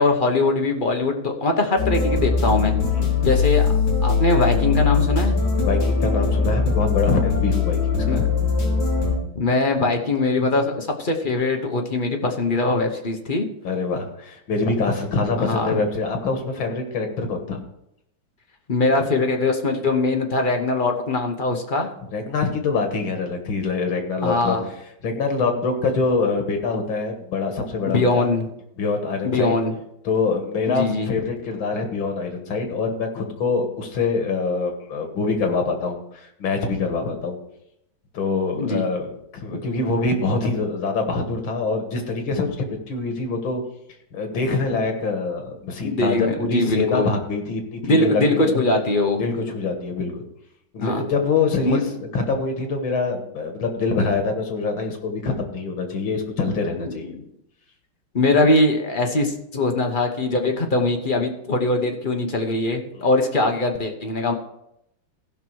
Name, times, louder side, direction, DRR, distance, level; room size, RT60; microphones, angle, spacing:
voice 1, 0.0-2.8 3.2-3.6 4.0-5.4 8.1-8.2 9.4-13.5 15.4-15.7 18.7-21.9 24.2-24.6 27.9-28.5 29.2-29.7 30.7-31.2 38.6-38.8 39.5-39.6 45.8-47.1 47.8-49.2 50.8-51.0 51.6-51.8 56.7-57.2 58.1-64.3, left 2 dB, 35° left, 3 dB, 0.8 m, -22 dB
sound 1, 1.8-9.2, left 5 dB, 55° left, 3.0 m, -21 dB
voice 2, 5.6-8.2 13.6-17.6 22.1-24.6 25.0-28.3 28.8-29.6 30.1-37.4 38.1-39.1 39.3-43.6 44.1-48.5 49.2-50.2 50.7-51.9 52.1-57.1 62.9-63.1, left 4 dB, 90° left, 4 dB, 2.3 m, -25 dB
15.5 x 5.8 x 4.7 m, 0.80 s
omnidirectional pair, 2.1 m